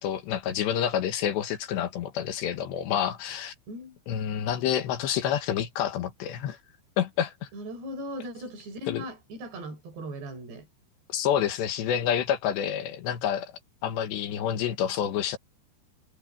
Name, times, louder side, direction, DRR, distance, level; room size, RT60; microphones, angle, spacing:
voice 1, 0.0-3.5 4.1-6.6 7.0-7.3 8.9-9.0 11.1-13.5 13.8-15.4, left 9 dB, 80° left, 3.6 m, -28 dB
voice 2, 3.7-4.0 7.5-10.7, equal, 65° right, 7.0 m, -38 dB
omnidirectional pair, 5.1 m